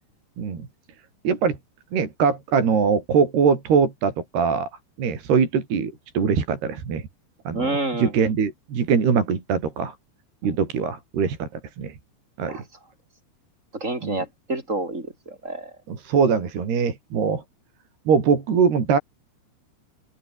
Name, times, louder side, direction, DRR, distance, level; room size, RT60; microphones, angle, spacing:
voice 1, 1.2-1.6 1.9-4.7 5.0-7.0 7.5-7.7 8.0-9.9 10.4-11.5 11.8-11.9 12.4-12.6 14.0-14.2 15.9-17.4 18.1-19.0, right 6 dB, 60° right, 6.5 m, -22 dB
voice 2, 7.5-8.1 10.4-10.5 12.5-12.6 13.7-15.7, right 2 dB, 15° right, 5.0 m, -29 dB
omnidirectional pair, 5.3 m